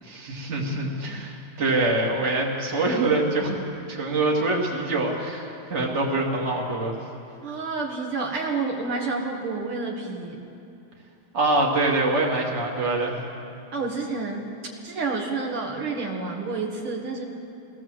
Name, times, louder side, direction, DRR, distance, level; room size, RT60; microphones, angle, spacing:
voice 1, 0.0-3.6 3.9-7.0 11.3-13.2, right 2 dB, 30° right, -1 dB, 2.5 m, -24 dB
voice 2, 7.4-10.4 13.7-14.5 14.8-17.2, right 3 dB, 75° right, 0 dB, 2.7 m, -29 dB
20.5 x 17.0 x 7.6 m, 2.7 s
omnidirectional pair, 2.4 m